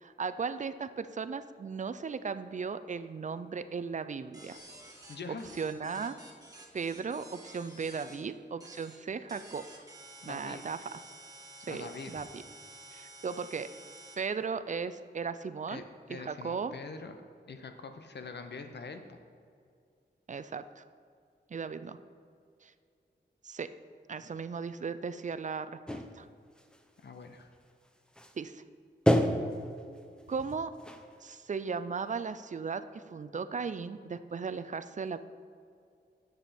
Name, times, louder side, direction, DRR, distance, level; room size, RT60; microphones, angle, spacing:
voice 1, 0.0-4.6 5.3-6.2 6.7-9.8 10.3-11.0 11.7-12.4 12.9-13.7 14.2-15.8 16.1-16.7 20.3-20.8 21.5-22.0 22.6-22.7 23.4-23.7 24.1-26.3 28.4-28.6 30.3-30.7 31.2-35.2, right 5 dB, 40° right, 12 dB, 0.4 m, -37 dB
sound 1, 4.3-8.2 8.6-9.0 9.3-14.2, right 2 dB, 20° right, 1.6 m, -51 dB
voice 2, 5.1-5.5 10.2-10.6 11.6-12.1 15.7-15.8 16.1-17.1 17.5-19.2 27.0-27.5, left 4 dB, 65° left, 7 dB, 0.9 m, -44 dB
sound 2, 25.9-26.2 26.6-27.0 27.5-27.6 27.9-28.4 29.1-31.6, equal, 5° left, 0.6 m, -29 dB
10.0 x 7.9 x 4.2 m, 2.4 s
wide cardioid pair, 130°, 19 cm